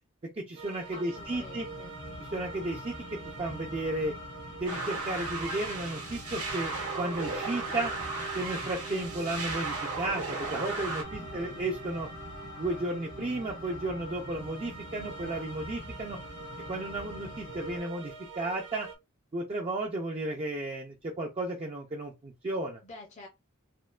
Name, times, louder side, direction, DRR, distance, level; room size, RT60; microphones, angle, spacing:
voice 1, 0.4-1.7 2.3-4.1 4.6-7.9 8.3-12.1 12.6-16.2 16.7-18.9 19.3-22.8, right 2 dB, 30° right, 0.4 m, -34 dB
sound 1, 0.6-19.0, right 5 dB, 55° right, 0.8 m, -46 dB
voice 2, 0.9-1.9 11.2-11.6 22.8-23.3, left 2 dB, 30° left, 0.7 m, -48 dB
sound 2, 1.1-17.8, left 2 dB, 80° left, 1.6 m, -44 dB
sound 3, 4.7-11.0, right 3 dB, 80° right, 1.4 m, -36 dB
4.3 x 2.1 x 2.4 m
head